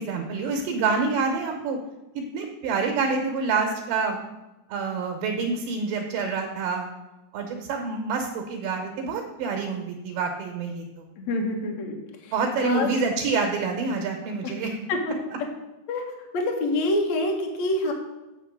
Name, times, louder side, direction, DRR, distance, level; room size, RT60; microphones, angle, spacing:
voice 1, 0.0-1.8 2.2-4.2 4.7-6.9 7.3-11.1 12.3-14.8, right 4 dB, 75° right, 3 dB, 2.9 m, -27 dB
voice 2, 11.2-12.0 12.6-12.9 14.4-14.5 14.9-15.0 15.9-16.0 16.3-17.9, left 2 dB, 90° left, 2 dB, 1.5 m, -26 dB
7.8 x 6.6 x 6.4 m, 1.1 s
omnidirectional pair, 5.5 m